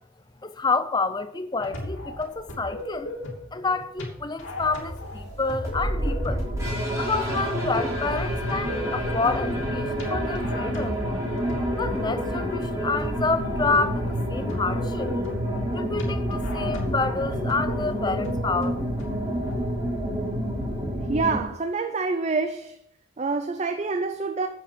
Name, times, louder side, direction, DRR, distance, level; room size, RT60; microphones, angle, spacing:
voice 1, 0.4-3.1 3.5-6.4 6.9-11.0 11.8-15.1 15.7-18.8, left 3 dB, 20° left, 0.5 m, -28 dB
sound 1, 1.6-19.5, left 1 dB, 60° left, 2.8 m, -37 dB
sound 2, 4.4-21.4, equal, 15° right, 3.5 m, -28 dB
voice 2, 21.1-22.8 23.2-24.5, right 4 dB, 30° right, 0.4 m, -26 dB
9.4 x 7.8 x 5.0 m
head